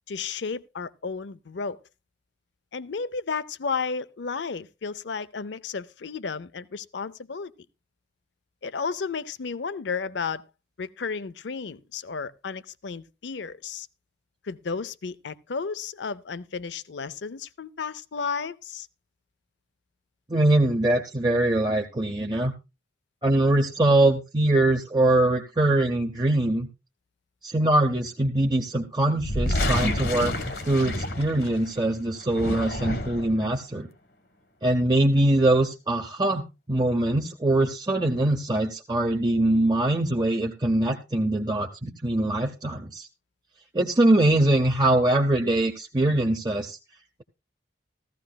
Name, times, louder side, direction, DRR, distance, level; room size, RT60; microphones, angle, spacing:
voice 1, 0.1-1.8 2.7-7.5 8.6-10.4 10.8-13.9 14.4-18.9, left 5 dB, 80° left, 0.6 m, -33 dB
voice 2, 20.3-22.5 23.2-26.7 27.4-30.3 30.6-33.9 34.6-36.4 36.7-43.1 43.7-46.8, right 1 dB, 25° right, 0.7 m, -23 dB
sound 1, 29.2-31.7 32.2-33.4, left 1 dB, 60° left, 1.3 m, -28 dB
15.0 x 14.5 x 2.3 m
head